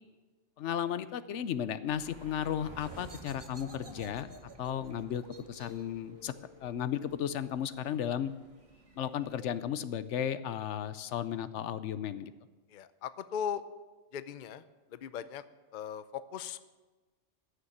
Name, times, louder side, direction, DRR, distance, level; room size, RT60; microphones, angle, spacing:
voice 1, 0.6-4.3 4.6-5.2 5.5-6.3 6.6-8.3 9.0-12.3, left 9 dB, 80° left, 14 dB, 1.0 m, -34 dB
sound 1, 1.9-9.5, right 2 dB, 80° right, 2.4 m, -58 dB
sound 2, 2.6-8.0, right 1 dB, 25° right, 0.8 m, -51 dB
voice 2, 12.7-13.6 14.1-14.6 14.9-15.4 15.7-16.6, left 8 dB, 50° left, 14 dB, 0.6 m, -38 dB
14.5 x 6.8 x 9.6 m, 1.2 s
omnidirectional pair, 1.2 m